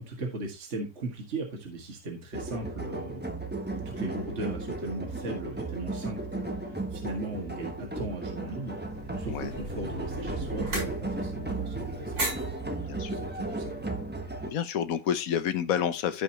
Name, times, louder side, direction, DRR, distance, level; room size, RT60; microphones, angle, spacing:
voice 1, 0.1-3.4 3.7-6.5 6.9-8.8 9.2-12.1 13.1-13.9, right 2 dB, 40° right, 2.2 m, -38 dB
sound 1, 2.3-14.5, right 2 dB, 5° right, 1.0 m, -35 dB
sound 2, 8.8-14.2, right 1 dB, 65° right, 7.4 m, -38 dB
voice 2, 9.3-9.6 12.8-13.1 14.5-16.2, left 9 dB, 60° left, 1.2 m, -29 dB
15.0 x 5.3 x 2.9 m
omnidirectional pair, 1.8 m